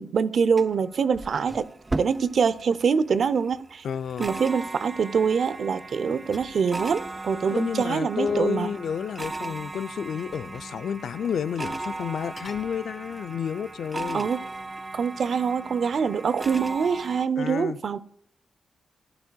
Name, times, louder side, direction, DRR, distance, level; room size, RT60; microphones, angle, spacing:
voice 1, 0.0-1.7 2.0-3.8 4.2-8.7 14.1-14.4 14.9-18.0, right 6 dB, 65° right, 0.6 m, -24 dB
sound 1, 0.6-17.3, right 2 dB, 25° right, 0.3 m, -37 dB
voice 2, 3.8-4.3 7.5-14.3 17.4-17.8, left 7 dB, 70° left, 0.4 m, -30 dB
sound 2, 6.3-6.7 9.2-9.7 10.2-10.8 11.1-11.2 12.4-13.3 13.9-14.7, left 2 dB, 30° left, 2.4 m, -50 dB
15.5 x 11.5 x 2.3 m
supercardioid pair, 55°, 0 cm